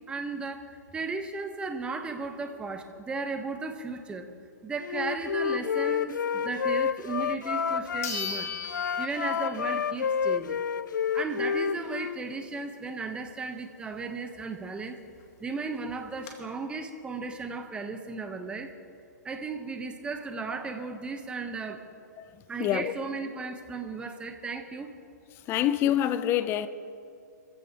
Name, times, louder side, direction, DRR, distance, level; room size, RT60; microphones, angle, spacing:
voice 1, 0.1-4.3 4.6-8.5 9.0-10.6 11.1-15.0 15.4-18.7 19.2-21.8 22.5-24.9, right 4 dB, 10° right, 1.0 m, -35 dB
Wind instrument woodwind instrument, 4.8-8.1 8.6-12.2, left 7 dB, 90° left, 0.5 m, -29 dB
sound 1, 7.2-7.3 8.0-9.8 10.2-10.3 14.9-15.0 15.2-15.3 15.9-16.3, left 6 dB, 55° left, 2.5 m, -37 dB
voice 2, 22.6-22.9 25.5-26.7, left 11 dB, 25° left, 0.6 m, -26 dB
25.0 x 15.0 x 2.9 m
hypercardioid pair, 145°, 10 cm